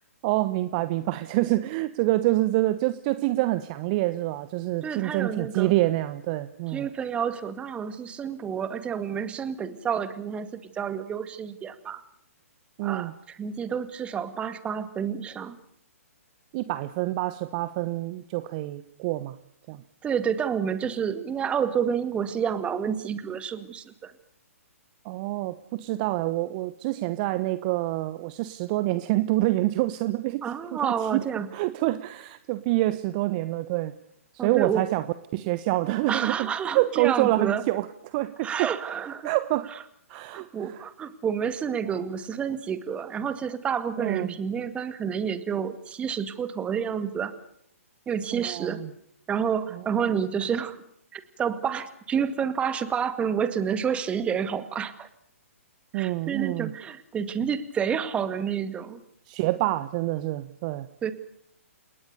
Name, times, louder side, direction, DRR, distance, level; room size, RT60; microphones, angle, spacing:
voice 1, 0.2-6.9 12.8-13.1 16.5-19.4 19.7-19.8 25.0-30.4 30.7-31.2 31.5-33.9 34.3-35.0 35.3-36.5 36.7-38.7 39.2-39.7 40.1-40.8 44.0-44.3 48.3-48.9 49.7-50.1 55.9-56.7 59.3-60.9, right 17 dB, 35° right, 14 dB, 1.1 m, -27 dB
voice 2, 4.8-5.7 6.7-12.0 12.8-15.6 20.0-24.1 30.4-31.5 34.4-34.9 36.1-37.6 38.4-39.3 40.1-47.3 48.1-48.8 49.3-50.8 51.1-55.1 55.9-59.0 61.0-61.1, right 7 dB, 15° right, 12 dB, 2.1 m, -29 dB
29.5 x 19.0 x 6.9 m, 0.69 s
figure-of-eight pair, 125°, 8 cm